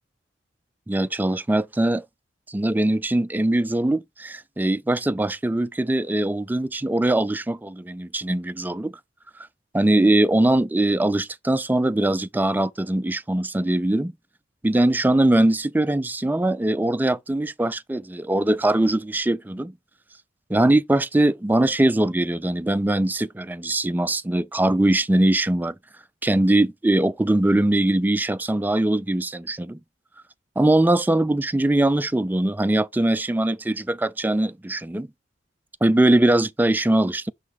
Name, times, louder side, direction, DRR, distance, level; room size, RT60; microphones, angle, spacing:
voice 1, 0.9-2.0 2.5-8.9 9.7-14.1 14.6-19.7 20.5-25.7 26.2-29.8 30.6-35.1 35.8-37.3, right 1 dB, 10° right, 0.3 m, -21 dB
5.8 x 3.9 x 4.6 m
head